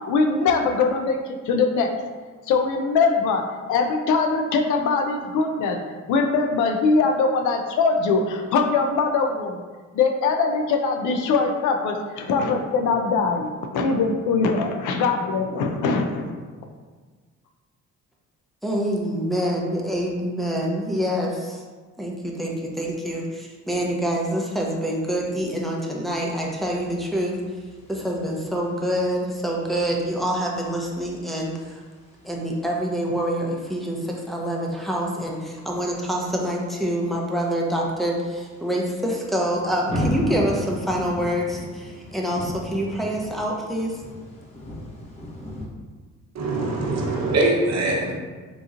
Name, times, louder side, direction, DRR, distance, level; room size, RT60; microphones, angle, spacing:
voice 1, 0.1-1.9 2.5-3.4 3.7-5.8 6.1-9.6 9.9-16.3, left 4 dB, 80° left, 4 dB, 0.5 m, -22 dB
voice 2, 18.6-21.6 22.0-27.3 27.9-31.8 32.2-44.0, equal, ahead, -3 dB, 0.6 m, -26 dB
sound 1, 26.4-45.7, left 1 dB, 20° left, 0.9 m, -37 dB
voice 3, 46.3-48.1, right 2 dB, 60° right, -2 dB, 0.9 m, -22 dB
3.8 x 2.9 x 2.5 m, 1.4 s
cardioid pair, 90°, 30 cm